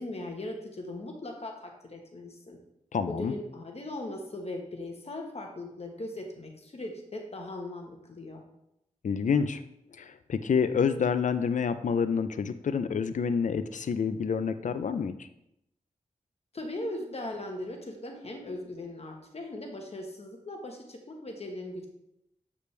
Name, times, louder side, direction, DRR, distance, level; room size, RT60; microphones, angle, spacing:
voice 1, 0.0-2.6 3.1-8.4 16.5-21.9, left 1 dB, 50° left, 2 dB, 1.2 m, -39 dB
voice 2, 2.9-3.3 9.0-9.6 10.0-15.1, left 6 dB, 70° left, 11 dB, 0.5 m, -28 dB
8.3 x 5.0 x 3.3 m, 0.82 s
wide cardioid pair, 70°, 13 cm